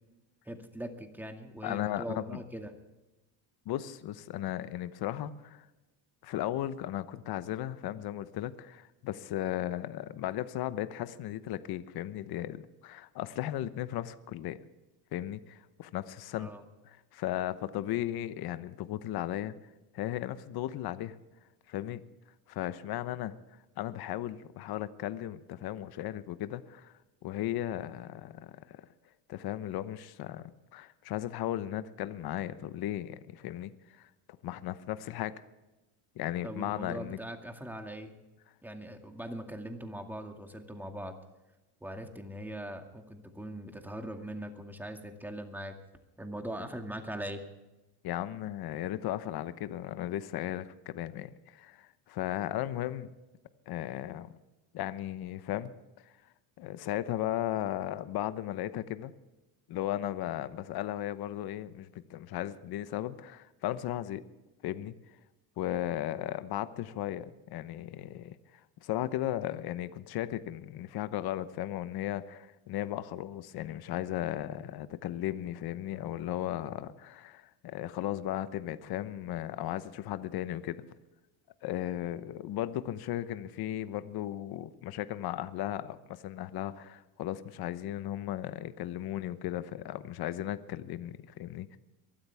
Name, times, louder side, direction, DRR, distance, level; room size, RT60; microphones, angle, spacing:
voice 1, 0.5-2.7 16.4-16.6 36.4-38.1 38.6-41.1 41.8-45.7 46.2-47.4, right 1 dB, 5° right, 4 dB, 2.1 m, -41 dB
voice 2, 1.6-2.4 3.6-5.7 6.2-14.6 15.1-16.5 16.9-19.5 19.9-21.2 21.7-22.0 22.5-26.9 27.2-28.8 29.3-34.1 34.4-35.3 36.1-37.2 48.0-53.1 53.7-54.3 54.7-55.7 56.0-56.1 56.6-59.1 59.7-64.2 64.6-64.9 65.6-80.8 81.6-91.8, left 13 dB, 55° left, 13 dB, 1.0 m, -36 dB
23.5 x 13.0 x 3.5 m, 1.0 s
cardioid pair, 110°, 44 cm